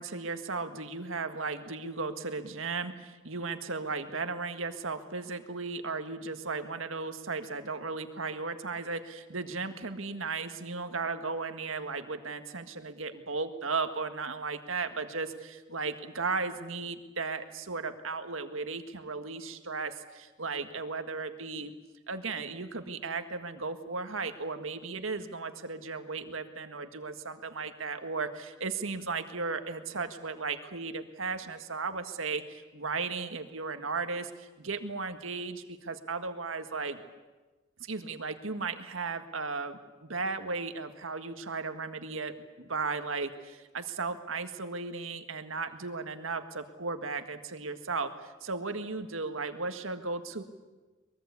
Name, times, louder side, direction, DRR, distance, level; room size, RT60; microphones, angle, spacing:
voice 1, 0.0-21.7 22.1-37.0 37.8-50.4, right 4 dB, 85° right, 8 dB, 1.8 m, -35 dB
23.0 x 22.0 x 8.4 m, 1.2 s
head